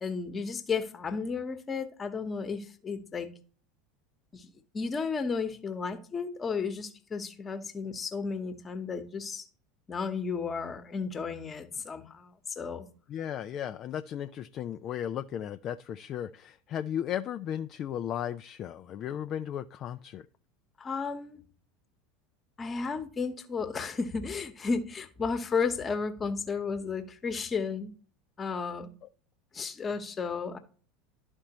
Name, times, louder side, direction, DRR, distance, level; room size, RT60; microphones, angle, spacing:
voice 1, 0.0-3.3 4.3-9.4 9.9-12.8 20.8-21.4 22.6-27.9 28.4-28.9 29.5-30.6, left 5 dB, 25° left, 8 dB, 1.1 m, -33 dB
voice 2, 13.1-20.2, left 10 dB, 40° left, 8 dB, 0.4 m, -35 dB
12.5 x 4.3 x 3.0 m, 0.41 s
figure-of-eight pair, 75°, 0 cm